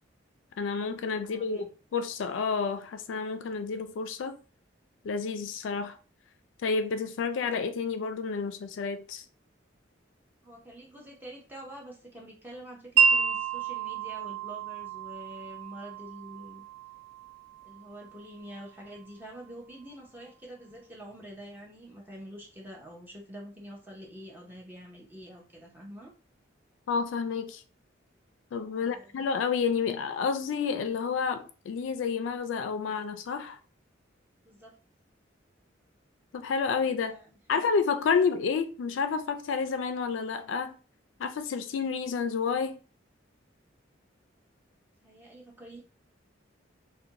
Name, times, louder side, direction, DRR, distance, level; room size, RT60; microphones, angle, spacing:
voice 1, 0.6-1.6 1.9-4.4 5.0-6.0 6.6-9.2 26.9-27.6 28.5-33.6 36.3-37.2 37.5-40.8 41.2-42.8, left 5 dB, 80° left, 0.3 m, -30 dB
voice 2, 1.2-1.7 10.4-16.6 17.6-26.1 28.7-29.2 34.4-34.7 37.0-37.6 38.2-38.3 45.0-45.8, equal, 10° right, 0.7 m, -46 dB
Wind chime, 13.0-19.0, right 6 dB, 80° right, 0.3 m, -30 dB
2.5 x 2.2 x 2.8 m
head